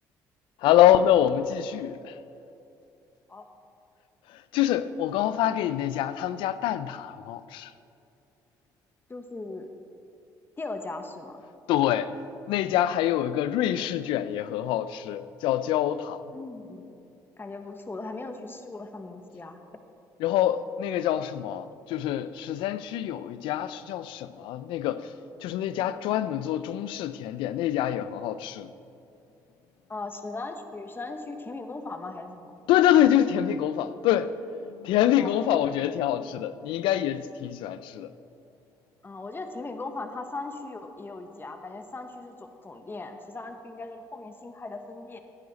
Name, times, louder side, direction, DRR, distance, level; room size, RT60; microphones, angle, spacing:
voice 1, 0.6-2.2 4.3-7.7 11.7-12.1 12.5-16.2 20.2-25.1 25.4-28.7 32.7-34.3 34.7-38.1, left 11 dB, 80° left, 0.5 m, -25 dB
voice 2, 9.1-9.7 10.6-11.4 16.3-17.0 17.4-19.6 29.9-32.5 35.2-35.3 35.7-35.8 39.0-45.2, left 3 dB, 25° left, 1.1 m, -38 dB
15.0 x 9.3 x 4.1 m
supercardioid pair, 65°, 8 cm